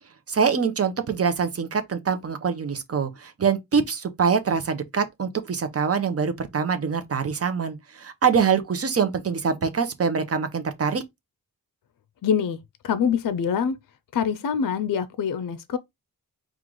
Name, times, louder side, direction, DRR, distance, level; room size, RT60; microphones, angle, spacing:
voice 1, 0.3-11.0, right 6 dB, 40° right, 0.7 m, -24 dB
voice 2, 12.2-12.6 12.8-13.8 14.1-15.8, left 7 dB, 60° left, 0.5 m, -24 dB
4.7 x 2.4 x 3.7 m
wide cardioid pair, 155°, 38 cm